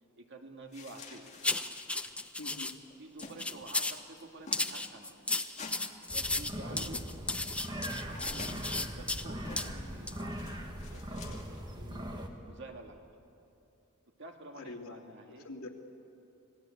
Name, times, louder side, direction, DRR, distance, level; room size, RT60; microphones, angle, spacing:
voice 1, 0.2-1.3 3.0-5.2 6.1-7.0 7.4-7.7 8.0-13.0 14.2-15.5, right 2 dB, 55° right, 3 dB, 2.1 m, -50 dB
sound 1, 0.7-2.1 2.4-2.5 2.7-3.4 3.6-3.8 4.2-4.7 5.6-5.8 7.5-8.7 9.4-9.8 10.3-11.6, left 3 dB, 35° left, 2.5 m, -48 dB
sound 2, 1.4-2.7 3.2-4.0 4.5-9.2 9.6-9.7 10.1-10.2, left 2 dB, 5° left, 0.7 m, -34 dB
voice 2, 2.4-2.8 6.7-6.9 14.5-15.0 15.3-15.7, left 2 dB, 80° left, 1 dB, 2.6 m, -45 dB
sound 3, 6.1-12.3, equal, 20° right, 2.0 m, -41 dB
26.5 x 18.5 x 8.6 m, 2.8 s
head